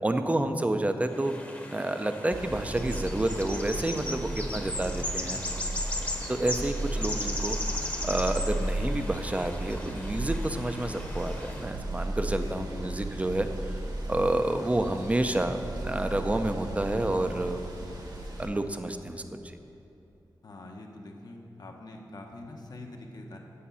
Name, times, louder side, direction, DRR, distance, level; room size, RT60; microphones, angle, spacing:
voice 1, 0.0-1.3 1.7-5.4 6.3-7.6 8.0-13.7 14.1-17.6 18.4-19.6, right 1 dB, 15° right, 7 dB, 0.6 m, -29 dB
sound 1, 1.1-11.7, left 1 dB, 20° left, 1.0 m, -37 dB
sound 2, 2.3-18.5, right 1 dB, 60° right, 1.5 m, -35 dB
voice 2, 4.0-4.8 12.4-13.0 20.4-23.4, left 2 dB, 55° left, 1 dB, 1.1 m, -45 dB
8.6 x 8.0 x 5.6 m, 2.8 s
wide cardioid pair, 90°, 8 cm